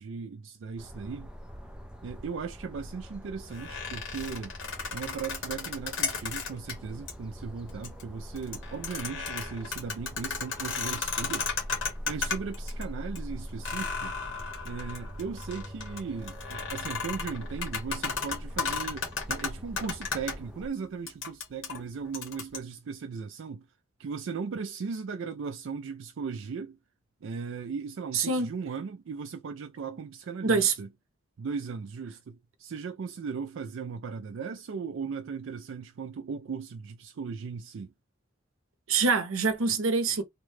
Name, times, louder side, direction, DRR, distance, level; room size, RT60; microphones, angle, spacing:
voice 1, 0.0-1.3 2.0-4.5 4.9-11.5 12.1-14.1 14.6-23.7 24.0-26.8 27.2-30.9 31.4-37.9, right 5 dB, 70° right, 0.4 m, -37 dB
sound 1, 0.8-20.7, equal, 5° right, 0.5 m, -43 dB
sound 2, 3.5-6.7 7.1-7.2 7.7-8.0 8.4-12.8 13.1-13.2 13.6-20.3 21.1-22.6, left 5 dB, 70° left, 1.6 m, -34 dB
voice 2, 28.1-28.5 30.4-30.7 38.9-40.2, right 4 dB, 90° right, 0.7 m, -25 dB
3.6 x 2.2 x 3.1 m
head